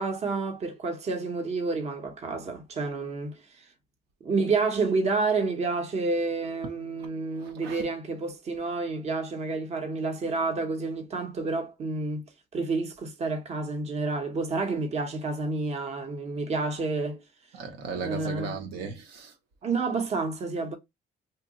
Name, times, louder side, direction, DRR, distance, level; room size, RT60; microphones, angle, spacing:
voice 1, 0.0-3.4 4.2-12.2 12.5-17.2 17.9-18.6 19.6-20.8, right 3 dB, 40° right, 0.8 m, -29 dB
voice 2, 7.4-7.9 17.5-19.3, right 5 dB, 80° right, 0.8 m, -36 dB
2.7 x 2.1 x 3.9 m
cardioid pair, 110°, 17 cm